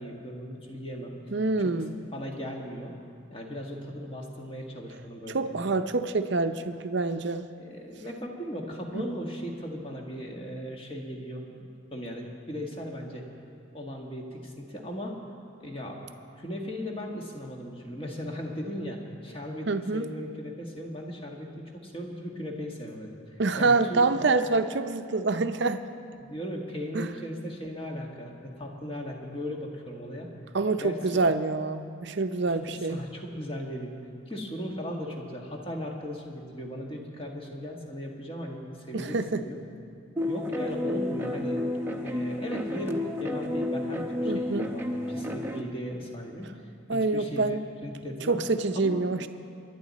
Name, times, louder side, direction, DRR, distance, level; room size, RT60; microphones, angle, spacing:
voice 1, 0.0-1.1 1.6-1.7 2.1-2.9 3.3-5.5 7.6-13.3 13.7-15.2 15.6-16.0 16.4-24.4 26.2-30.3 30.8-31.3 32.5-34.0 34.3-39.6 40.3-41.6 42.0-48.4 48.7-49.1, equal, 25° left, 0 dB, 1.5 m, -37 dB
voice 2, 1.3-1.9 5.3-7.5 8.9-9.1 19.7-20.1 23.4-25.8 26.9-27.1 30.5-33.0 38.9-39.4 44.3-44.7 46.9-47.6 48.3-49.3, right 3 dB, 55° right, 9 dB, 0.6 m, -26 dB
sound 1, 40.2-45.6, left 1 dB, 10° right, 0.8 m, -31 dB
24.0 x 11.0 x 4.2 m, 2.4 s
head